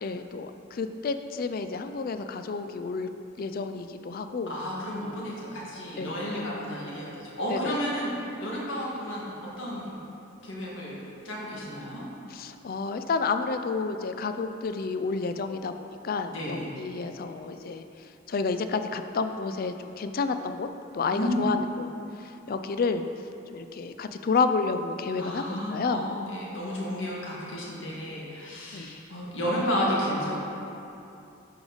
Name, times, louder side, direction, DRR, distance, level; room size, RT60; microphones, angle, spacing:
voice 1, 0.0-3.1 3.4-4.5 6.0-6.5 7.5-7.7 12.3-17.8 18.3-20.7 20.9-21.9 22.2-23.0 23.5-26.0 28.7-29.0, left 4 dB, 45° left, 8 dB, 0.4 m, -30 dB
voice 2, 4.5-10.0 10.4-11.0 11.2-12.0 16.3-16.7 21.1-21.4 25.1-30.5, equal, 70° left, -5 dB, 1.7 m, -32 dB
10.0 x 4.9 x 3.9 m, 2.8 s
head